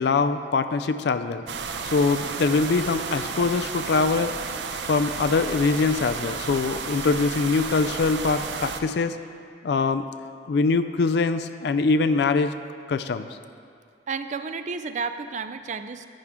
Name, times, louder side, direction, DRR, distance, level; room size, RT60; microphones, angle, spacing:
voice 1, 0.0-1.4 1.9-4.3 4.9-9.2 9.6-10.0 10.5-12.5 12.9-13.2, left 4 dB, 70° left, 10 dB, 0.4 m, -23 dB
sound 1, 1.5-8.8, right 5 dB, 85° right, 0.6 m, -32 dB
voice 2, 14.1-16.1, right 5 dB, 45° right, 10 dB, 0.4 m, -31 dB
10.5 x 9.8 x 3.6 m, 2.2 s
head